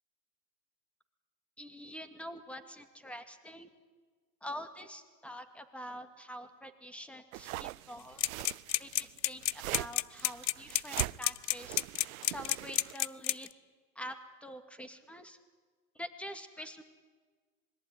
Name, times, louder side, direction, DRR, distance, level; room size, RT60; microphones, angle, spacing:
voice 1, 1.6-3.7 4.4-8.2 8.8-11.8 12.3-13.5 14.0-15.4 16.0-16.8, equal, ahead, 9 dB, 2.3 m, -46 dB
sound 1, 7.3-12.9, right 18 dB, 55° right, 0.7 m, -42 dB
sound 2, 8.2-13.5, left 14 dB, 80° left, 0.8 m, -30 dB
26.0 x 21.5 x 9.8 m, 1.4 s
hypercardioid pair, 120°, 50 cm